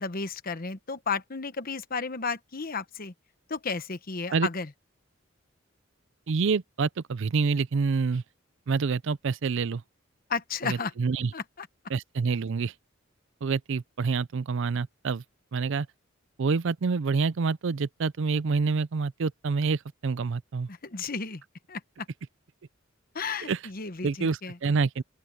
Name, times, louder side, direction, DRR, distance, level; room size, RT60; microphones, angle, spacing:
voice 1, 0.0-3.1 3.5-4.7 10.3-10.9 11.3-11.7 20.7-21.4 21.7-21.8 23.1-24.6, left 5 dB, 45° left, 1.1 m, -33 dB
voice 2, 6.3-8.2 8.7-9.8 10.6-11.3 11.9-12.7 13.4-15.2 15.5-15.9 16.4-20.7 23.4-23.6 24.0-25.0, right 4 dB, 65° right, 0.5 m, -27 dB
open air
head